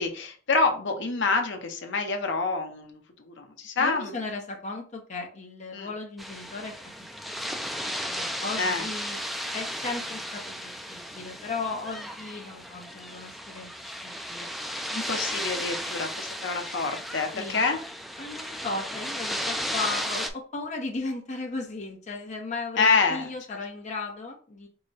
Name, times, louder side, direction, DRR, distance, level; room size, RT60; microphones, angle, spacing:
voice 1, 0.0-3.0 3.3-4.1 5.7-5.9 8.6-8.9 14.9-17.8 22.8-23.3, left 4 dB, 65° left, 4 dB, 0.9 m, -27 dB
voice 2, 3.8-7.1 7.4-9.2 9.5-14.5 17.3-17.6 18.2-24.7, left 3 dB, 35° left, 0 dB, 0.7 m, -36 dB
sound 1, 6.2-20.3, equal, ahead, 0.3 m, -35 dB
4.7 x 2.2 x 4.0 m, 0.40 s
head